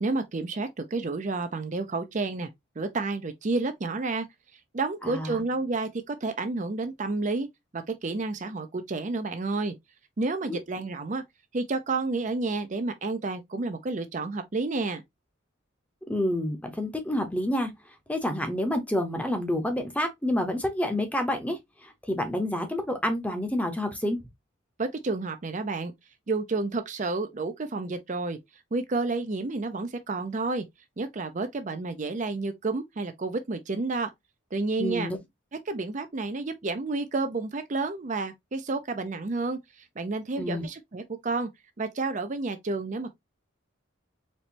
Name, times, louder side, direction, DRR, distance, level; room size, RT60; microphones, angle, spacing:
voice 1, 0.0-2.5 2.8-4.3 4.7-7.5 7.7-9.7 10.2-11.2 11.5-15.0 24.8-25.9 26.3-28.4 28.7-30.6 31.0-34.1 34.5-35.1 35.7-41.5 41.8-43.1, right 3 dB, 40° right, 0.5 m, -30 dB
voice 2, 5.0-5.4 10.5-10.6 16.1-17.7 18.1-21.6 21.8-24.2 34.8-35.2 40.4-40.6, left 1 dB, 5° left, 0.8 m, -28 dB
4.3 x 3.1 x 2.9 m
head